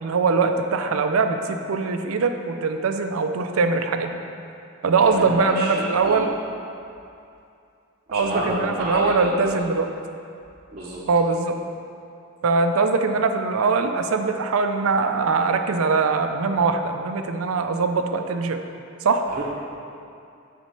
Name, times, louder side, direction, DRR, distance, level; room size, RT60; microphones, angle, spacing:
voice 1, 0.0-4.2 4.8-6.3 8.1-9.9 11.1-11.6 12.4-18.6 19.0-19.2, right 4 dB, 75° right, 7 dB, 0.5 m, -22 dB
voice 2, 5.0-6.2 8.1-9.5 10.7-11.0 19.3-19.4, right 1 dB, 30° right, -8 dB, 0.7 m, -29 dB
6.0 x 4.3 x 5.6 m, 2.5 s
head